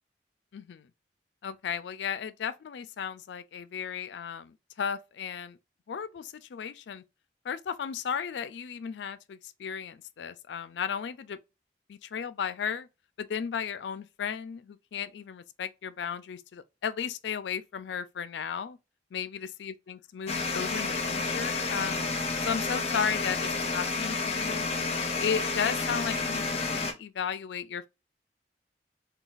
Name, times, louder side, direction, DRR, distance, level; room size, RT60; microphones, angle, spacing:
voice 1, 0.5-0.9 1.4-5.6 5.9-7.0 7.4-11.4 11.9-12.9 13.2-18.8 19.1-22.1 22.4-24.7 25.2-27.9, left 7 dB, 80° left, 0.4 m, -35 dB
sound 1, 20.3-26.9, left 3 dB, 35° left, 0.7 m, -30 dB
3.9 x 2.3 x 2.4 m
head